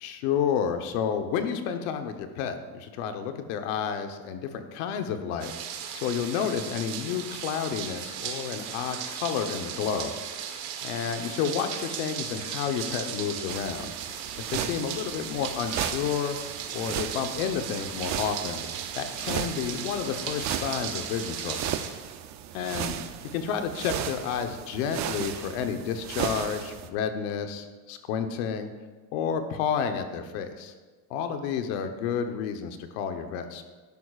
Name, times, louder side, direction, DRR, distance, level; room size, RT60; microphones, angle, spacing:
voice 1, 0.0-5.5 5.9-10.5 10.8-13.9 14.4-16.4 16.7-18.6 19.0-21.7 22.5-23.0 23.3-28.7 29.1-30.7 31.1-33.6, left 7 dB, 85° left, 7 dB, 1.1 m, -30 dB
sound 1, 5.4-21.9, right 8 dB, 70° right, 1.4 m, -37 dB
sound 2, 13.5-26.9, right 10 dB, 45° right, 0.7 m, -36 dB
12.0 x 11.0 x 2.5 m, 1.4 s
cardioid pair, 125°, 39 cm